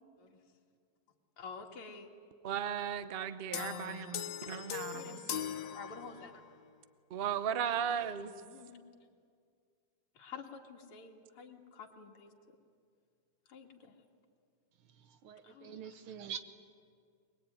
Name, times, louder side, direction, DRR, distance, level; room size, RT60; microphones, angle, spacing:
voice 1, 1.4-2.1 3.4-4.1 4.5-6.4 8.2-8.8 10.1-12.3 13.5-14.0 15.4-16.0, left 5 dB, 85° left, 1 dB, 2.6 m, -50 dB
voice 2, 2.4-5.2 7.1-8.3, right 8 dB, 55° right, 11 dB, 0.6 m, -36 dB
sound 1, 3.5-6.5, left 9 dB, 65° left, 1.3 m, -41 dB
voice 3, 15.0-16.4, right 8 dB, 75° right, 9 dB, 2.0 m, -45 dB
23.0 x 21.0 x 9.2 m, 2.2 s
omnidirectional pair, 2.3 m